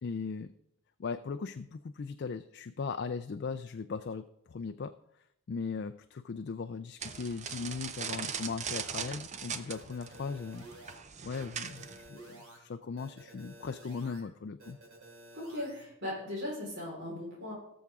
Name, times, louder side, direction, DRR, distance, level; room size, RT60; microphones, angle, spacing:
voice 1, 0.0-0.5 1.0-4.9 5.5-10.7 11.2-14.8, left 5 dB, 50° left, 9 dB, 0.3 m, -38 dB
sound 1, 7.0-12.1, right 7 dB, 30° right, 0.5 m, -40 dB
sound 2, 9.7-10.9 11.3-12.6 13.0-14.2 14.6-15.8, right 2 dB, 75° right, 3.6 m, -52 dB
voice 2, 15.3-17.5, left 1 dB, 50° right, -4 dB, 4.5 m, -38 dB
18.0 x 7.1 x 3.6 m, 0.79 s
head